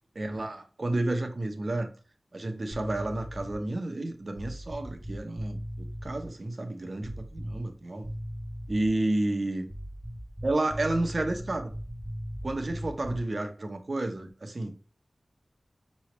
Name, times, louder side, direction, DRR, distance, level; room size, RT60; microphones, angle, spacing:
voice 1, 0.1-1.9 2.3-8.1 8.7-9.7 10.4-11.7 12.4-14.8, right 2 dB, 55° right, 0.8 m, -31 dB
sound 1, 2.7-3.7 4.3-6.3 7.0-7.8 8.0-9.0 9.7-13.3, equal, 5° right, 0.7 m, -38 dB
5.4 x 3.1 x 3.0 m
wide cardioid pair, 75°, 0 cm